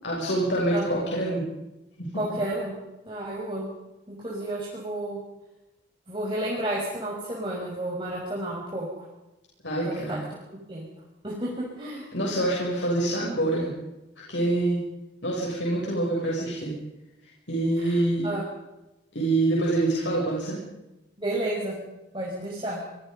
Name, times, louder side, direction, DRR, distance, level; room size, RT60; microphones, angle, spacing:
voice 1, 0.0-1.4 2.0-2.1 9.6-10.2 12.1-13.7 14.3-14.8 15.2-16.7 17.5-18.3 19.1-20.6, right 2 dB, 80° left, -3 dB, 7.2 m, -26 dB
voice 2, 2.1-2.8 3.1-3.7 4.1-5.2 6.1-8.9 9.8-10.2 10.7-10.9 11.2-12.1 17.8-18.4 21.2-21.8 22.1-22.8, right 1 dB, 25° right, -4 dB, 5.9 m, -31 dB
27.5 x 22.5 x 5.4 m, 0.98 s
head